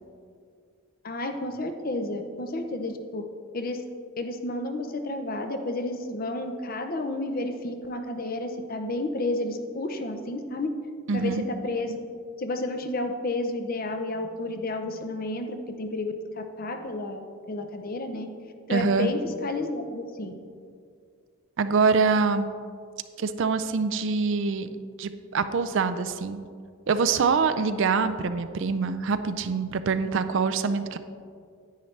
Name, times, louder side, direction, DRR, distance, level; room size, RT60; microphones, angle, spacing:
voice 1, 1.0-3.2 3.5-3.8 4.2-10.7 11.1-12.0 12.4-18.3 18.7-20.3, left 2 dB, 40° left, 6 dB, 0.6 m, -31 dB
voice 2, 11.1-11.4 18.7-19.1 21.6-22.5 23.2-24.7 25.0-26.4 26.9-31.0, right 5 dB, 55° right, 10 dB, 0.4 m, -24 dB
10.5 x 9.1 x 3.2 m, 2.2 s
head